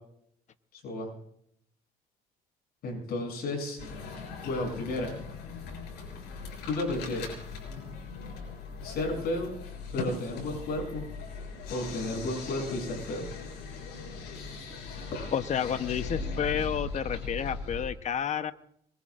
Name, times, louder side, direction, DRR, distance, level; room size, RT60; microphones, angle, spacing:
voice 1, 0.7-1.1 2.8-3.8 4.4-5.2 6.6-7.3 8.8-9.6 9.9-11.0 11.7-13.3, left 2 dB, 65° left, 1 dB, 7.6 m, -32 dB
sound 1, 3.8-17.9, left 4 dB, 90° left, 6.7 m, -39 dB
voice 2, 15.3-18.5, left 8 dB, 45° left, 11 dB, 0.9 m, -30 dB
25.0 x 22.0 x 2.5 m, 0.69 s
cardioid pair, 110°, 17 cm